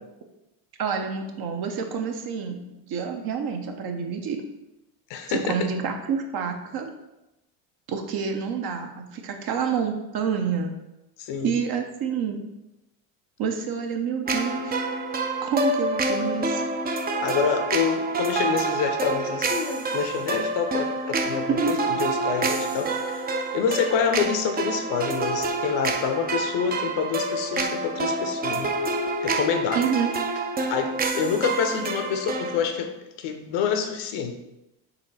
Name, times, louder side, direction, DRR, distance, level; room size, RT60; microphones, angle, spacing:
voice 1, 0.8-4.4 5.3-6.9 7.9-10.7 11.4-12.4 13.4-14.8 15.4-16.6 21.5-21.7 29.7-30.1, right 6 dB, 50° right, 4 dB, 0.8 m, -28 dB
voice 2, 5.1-5.7 11.2-11.6 17.2-23.3 23.5-28.7 29.2-29.8 30.7-34.3, left 7 dB, 65° left, 6 dB, 0.8 m, -27 dB
sound 1, 14.3-32.6, right 3 dB, 20° right, 0.4 m, -27 dB
4.3 x 2.8 x 4.1 m, 0.93 s
supercardioid pair, 85°, 46 cm